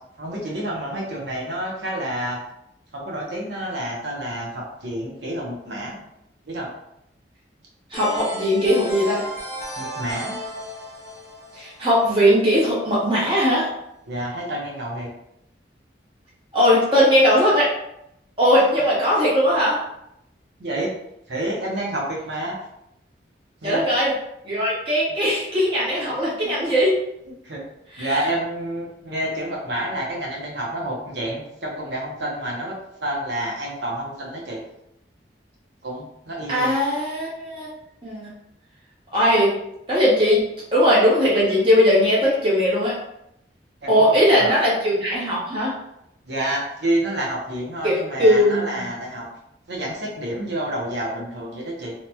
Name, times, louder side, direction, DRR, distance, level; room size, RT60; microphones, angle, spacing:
voice 1, 0.2-2.4 2.9-6.0 6.4-6.7 9.8-10.3 14.1-15.1 20.6-21.0 21.3-22.5 23.6-23.9 26.4-26.6 27.4-27.6 28.0-34.6 35.8-36.7 43.8-44.6 46.3-49.2 49.7-51.9, right 1 dB, 75° right, -2 dB, 0.8 m, -29 dB
sound 1, 7.9-12.6, equal, 15° left, 0.7 m, -34 dB
voice 2, 7.9-9.2 11.5-13.7 16.5-17.7 18.4-19.8 23.6-24.1 24.4-26.9 27.9-28.3 36.5-37.7 38.0-38.3 39.1-39.5 39.9-40.4 40.7-42.9 43.9-45.7 47.8-48.8, equal, 30° right, -7 dB, 1.1 m, -19 dB
2.8 x 2.8 x 2.2 m, 0.79 s
head